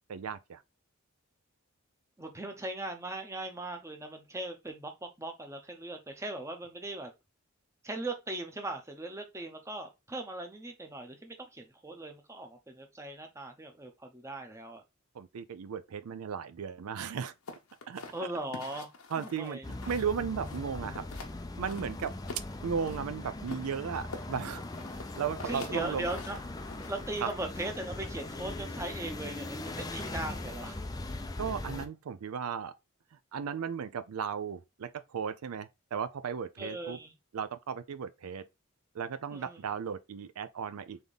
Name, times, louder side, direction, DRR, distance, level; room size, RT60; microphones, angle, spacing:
voice 1, 0.1-0.6 15.1-17.3 17.9-18.0 19.1-21.1 21.6-22.1 22.6-24.6 24.9-26.1 27.2-27.3 31.4-32.7 33.3-37.0 37.3-38.5 38.9-41.0, right 7 dB, 80° right, 0.4 m, -35 dB
voice 2, 2.2-7.1 7.8-14.8 18.1-18.9 19.2-19.7 25.4-26.4 26.9-30.8 36.6-37.1 39.3-39.6, right 2 dB, 15° right, 0.7 m, -39 dB
sound 1, 17.5-20.1 20.4-21.3 21.7-23.0 23.5-27.3, left 3 dB, 80° left, 1.0 m, -46 dB
sound 2, 19.6-31.9, left 2 dB, 15° left, 0.4 m, -40 dB
3.5 x 3.5 x 3.8 m
head